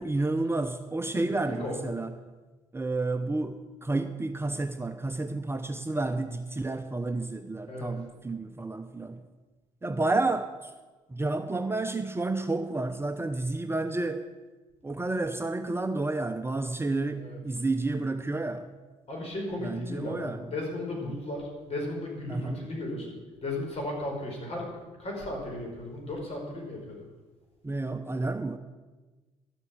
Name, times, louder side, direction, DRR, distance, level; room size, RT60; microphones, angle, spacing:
voice 1, 0.0-2.1 2.7-9.2 9.8-10.7 11.1-14.3 14.8-18.7 19.6-20.5 22.3-22.6 27.6-28.6, right 2 dB, 15° right, 7 dB, 0.8 m, -30 dB
voice 2, 1.5-1.8 7.7-7.9 17.2-17.4 19.1-23.1 23.4-24.7 25.0-27.0, left 1 dB, 45° left, 0 dB, 5.2 m, -35 dB
12.0 x 7.9 x 7.4 m, 1.2 s
supercardioid pair, 65°, 14 cm